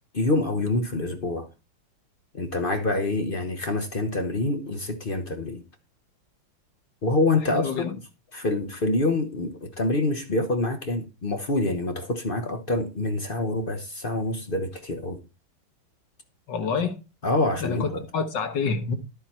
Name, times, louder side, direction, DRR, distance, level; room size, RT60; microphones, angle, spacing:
voice 1, 0.1-1.5 2.3-5.6 7.0-7.9 8.3-15.2 17.2-18.0, left 2 dB, 40° left, 0.8 m, -26 dB
voice 2, 7.5-7.9 16.5-17.0 17.6-19.0, left 5 dB, 65° left, 1.8 m, -27 dB
11.0 x 7.4 x 4.3 m
omnidirectional pair, 2.2 m